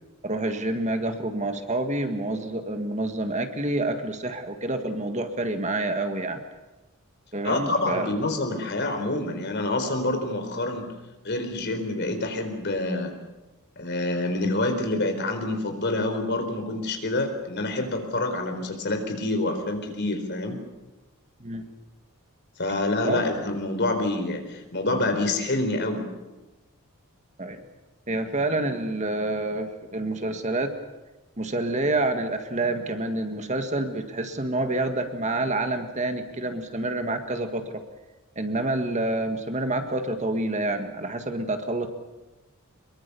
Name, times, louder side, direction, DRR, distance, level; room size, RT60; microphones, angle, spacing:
voice 1, 0.2-6.4 7.3-8.1 21.4-21.6 23.0-23.3 27.4-27.6 28.1-30.7 31.4-37.8 38.4-41.9, right 2 dB, 30° right, 6 dB, 1.8 m, -28 dB
voice 2, 7.4-10.9 11.2-13.1 13.8-20.6 22.6-26.1, left 2 dB, 50° left, 6 dB, 4.2 m, -27 dB
24.5 x 22.5 x 7.0 m, 1.1 s
head